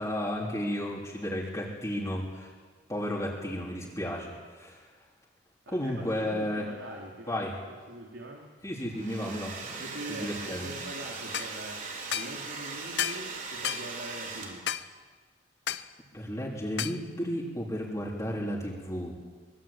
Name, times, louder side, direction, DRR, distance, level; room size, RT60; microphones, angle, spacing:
voice 1, 0.0-2.5 2.9-4.9 5.7-6.7 7.3-7.6 8.6-10.7 16.1-19.1, equal, 20° left, -4 dB, 3.9 m, -33 dB
voice 2, 5.7-8.5 9.8-11.8 12.1-14.7, right 1 dB, 90° right, -2 dB, 3.7 m, -43 dB
Domestic sounds home sounds, 8.8-14.9, right 4 dB, 45° right, 4.1 m, -40 dB
sound 1, 11.3-11.5 12.1-12.3 13.0-13.2 13.6-13.9 14.7-14.9 15.7-15.9 16.8-17.0, left 10 dB, 65° left, 0.9 m, -31 dB
24.0 x 23.0 x 9.1 m, 1.5 s
head